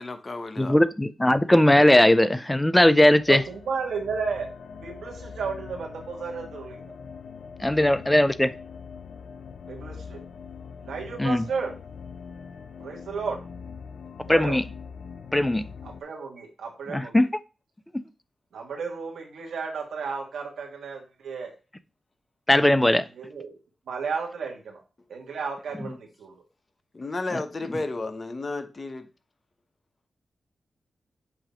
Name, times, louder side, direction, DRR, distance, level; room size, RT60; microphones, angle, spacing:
voice 1, 0.0-0.7 26.9-29.1, left 2 dB, 40° left, 1.0 m, -32 dB
voice 2, 0.6-3.4 7.6-8.5 11.2-11.5 14.3-14.6 15.3-15.7 16.9-17.3 17.9-18.0 22.5-23.1 25.8-26.0 27.3-27.4, left 1 dB, 10° left, 0.6 m, -19 dB
sound 1, 3.0-16.0, left 6 dB, 80° left, 0.6 m, -42 dB
voice 3, 3.3-4.5 4.7-6.8 9.7-10.2 10.8-11.7 12.8-13.4 14.3-14.6 16.0-17.1 18.5-21.5 23.2-23.5 23.9-24.8 25.1-26.3, right 5 dB, 90° right, 1.6 m, -33 dB
7.7 x 2.9 x 5.1 m
cardioid pair, 65°, 0 cm